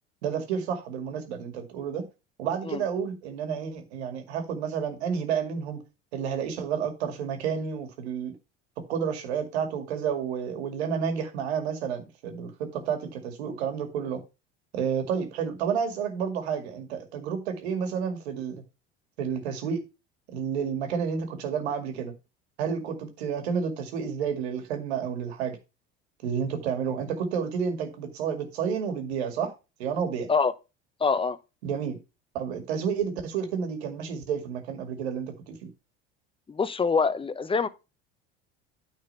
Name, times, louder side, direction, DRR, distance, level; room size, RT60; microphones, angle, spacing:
voice 1, 0.2-2.1 2.4-5.8 6.1-8.3 8.9-14.2 14.7-18.6 19.2-19.9 20.3-22.1 22.6-25.6 26.2-29.5 29.8-30.3 31.6-32.0 32.3-35.7, right 7 dB, 85° right, 2.2 m, -30 dB
voice 2, 31.0-31.4 36.5-37.7, left 5 dB, 15° left, 0.8 m, -25 dB
9.3 x 4.4 x 5.6 m
hypercardioid pair, 80°, 32 cm